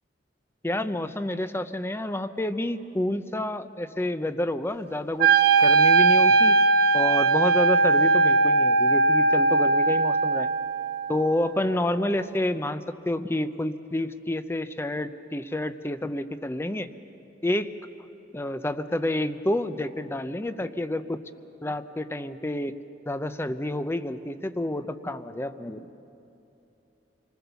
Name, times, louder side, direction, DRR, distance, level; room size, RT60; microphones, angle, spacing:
voice 1, 0.6-5.3 5.6-6.6 6.9-10.5 11.1-16.9 17.4-17.7 18.3-21.2 21.6-22.7 23.1-25.9, left 1 dB, 15° left, 11 dB, 0.6 m, -29 dB
Wind instrument woodwind instrument, 5.2-11.3, right 3 dB, 55° right, 1.2 m, -20 dB
27.5 x 19.5 x 6.9 m, 2.9 s
head